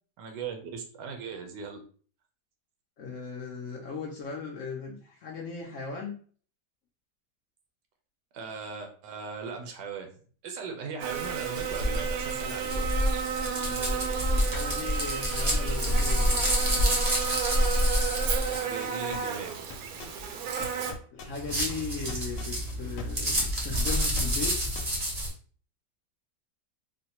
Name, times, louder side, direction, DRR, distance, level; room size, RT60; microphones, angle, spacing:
voice 1, 0.2-1.8 8.3-10.1 10.4-12.9 18.4-19.5, right 5 dB, 85° right, 4 dB, 1.3 m, -38 dB
voice 2, 3.0-6.2 13.6-17.0 21.1-24.6, left 5 dB, 65° left, 0 dB, 0.8 m, -38 dB
Buzz, 11.0-20.9, right 7 dB, 70° right, 1.0 m, -33 dB
sound 1, 11.2-18.6 21.3-25.3, equal, 35° right, 0.6 m, -28 dB
sound 2, 17.0-18.0 18.2-23.3 23.6-25.1, left 5 dB, 80° left, 1.2 m, -42 dB
3.9 x 2.2 x 2.9 m, 0.44 s
omnidirectional pair, 1.8 m